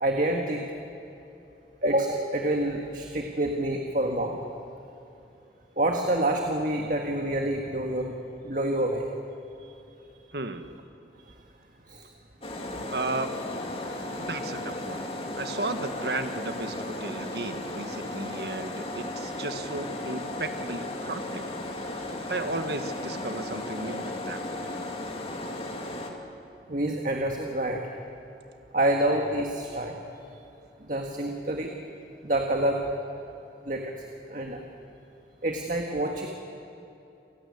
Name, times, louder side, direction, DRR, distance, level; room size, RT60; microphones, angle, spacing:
voice 1, 0.0-0.7 1.8-4.4 5.8-8.2 8.4-9.0 11.9-12.0 26.7-27.8 28.7-30.0 30.8-31.7 32.2-32.8 33.7-33.9 34.3-34.6 35.4-36.3, right 1 dB, 45° right, 2 dB, 1.8 m, -27 dB
voice 2, 10.3-10.8 12.9-13.3 14.2-21.4 21.8-24.7, right 2 dB, 65° right, 8 dB, 1.6 m, -35 dB
sound 1, 12.4-26.1, left 1 dB, 35° left, 2.5 m, -35 dB
29.0 x 16.5 x 9.8 m, 2.8 s
head